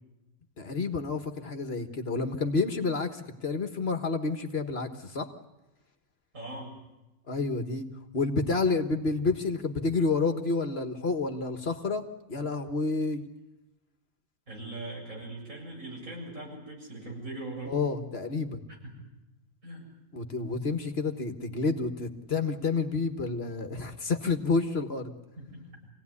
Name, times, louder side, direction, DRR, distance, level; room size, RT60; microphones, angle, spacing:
voice 1, 0.6-5.3 7.3-7.9 8.1-13.2 17.7-18.6 20.1-25.1, left 3 dB, 50° left, 7 dB, 1.7 m, -29 dB
voice 2, 6.3-6.8 14.5-17.7 18.8-19.1 19.6-19.9 25.4-25.6, right 2 dB, 85° right, -2 dB, 7.9 m, -40 dB
26.0 x 17.5 x 9.8 m, 1.0 s
omnidirectional pair, 1.4 m